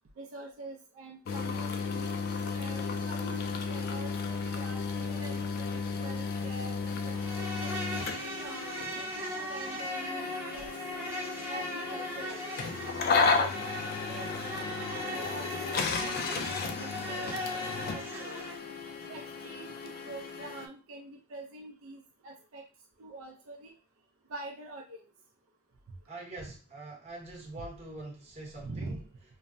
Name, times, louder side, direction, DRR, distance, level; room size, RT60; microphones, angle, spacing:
voice 1, 0.2-2.1 2.6-7.2 7.6-10.7 11.5-12.9 13.2-18.5 19.0-22.6 23.0-23.7 24.3-25.0 28.5-29.0, right 2 dB, 75° right, 1 dB, 0.5 m, -45 dB
sound 1, 1.3-20.7, left 4 dB, 45° left, 0.3 m, -34 dB
Insect, 7.1-18.6, equal, 10° right, 0.6 m, -38 dB
voice 2, 26.1-29.0, right 2 dB, 30° right, -3 dB, 0.9 m, -44 dB
3.1 x 2.0 x 2.6 m, 0.34 s
head